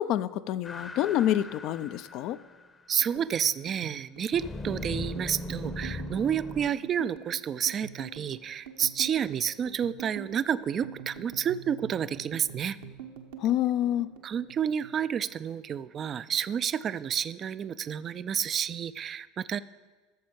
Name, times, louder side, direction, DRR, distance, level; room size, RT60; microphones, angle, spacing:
voice 1, 0.0-2.4 13.4-14.1, left 12 dB, 55° left, 14 dB, 0.4 m, -27 dB
sound 1, 0.6-2.7 4.3-6.7, left 1 dB, 25° left, 0.8 m, -38 dB
voice 2, 2.9-12.8 14.2-19.6, right 8 dB, 35° right, 16 dB, 0.4 m, -30 dB
sound 2, 3.0-15.6 15.8-16.9 17.2-17.5 17.8-18.5, right 7 dB, 70° right, 1.0 m, -45 dB
14.0 x 6.8 x 5.2 m, 1.3 s
figure-of-eight pair, 75°, 0 cm